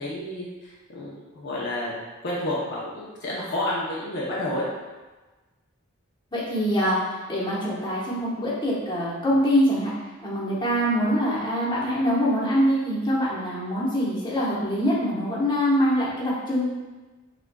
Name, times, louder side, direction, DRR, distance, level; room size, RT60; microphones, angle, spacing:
voice 1, 0.0-4.6, left 1 dB, 60° left, -6 dB, 0.7 m, -30 dB
voice 2, 6.3-9.9 10.2-16.7, equal, 20° left, -8 dB, 1.0 m, -24 dB
5.8 x 2.5 x 2.2 m, 1.2 s
head